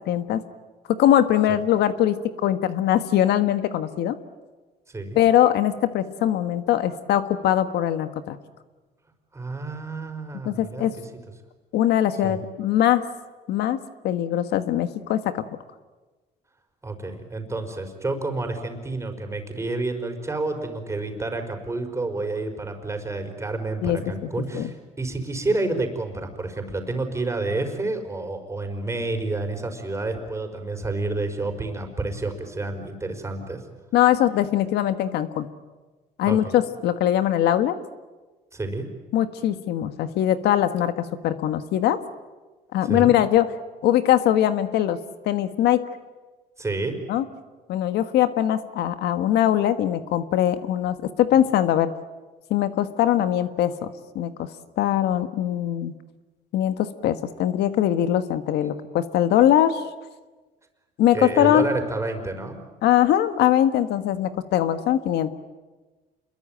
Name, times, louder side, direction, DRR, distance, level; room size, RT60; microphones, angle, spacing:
voice 1, 0.1-0.4 1.0-4.2 5.1-8.4 10.4-10.9 11.7-13.0 13.5-13.8 14.0-15.4 23.8-24.0 24.5-24.7 33.9-35.5 36.2-37.8 39.1-42.0 42.7-43.5 43.8-45.0 45.2-45.8 47.1-47.2 47.7-51.9 52.5-54.5 54.8-55.9 56.5-59.8 61.0-61.7 62.8-65.3, left 11 dB, 80° left, 10 dB, 1.5 m, -21 dB
voice 2, 4.9-5.2 9.3-11.1 12.2-12.4 16.8-33.6 36.2-36.5 38.5-38.9 42.9-43.1 46.6-47.0 58.6-58.7 61.1-62.6, right 2 dB, 15° right, 5 dB, 5.0 m, -29 dB
27.5 x 22.5 x 9.1 m, 1.2 s
cardioid pair, 110°, 17 cm